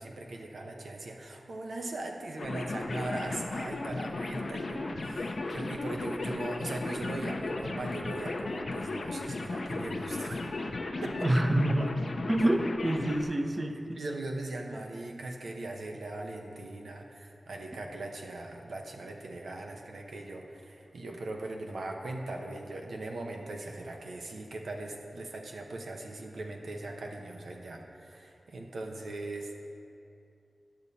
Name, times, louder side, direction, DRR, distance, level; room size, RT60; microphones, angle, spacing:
voice 1, 0.0-10.5 11.0-11.3 13.9-29.6, right 2 dB, 90° right, 1 dB, 0.9 m, -39 dB
sound 1, 2.4-13.2, left 2 dB, 65° left, 0.6 m, -35 dB
voice 2, 11.2-11.9 12.3-14.0, right 1 dB, 30° right, 5 dB, 0.6 m, -27 dB
10.5 x 6.8 x 4.1 m, 2.6 s
wide cardioid pair, 85°, 0 cm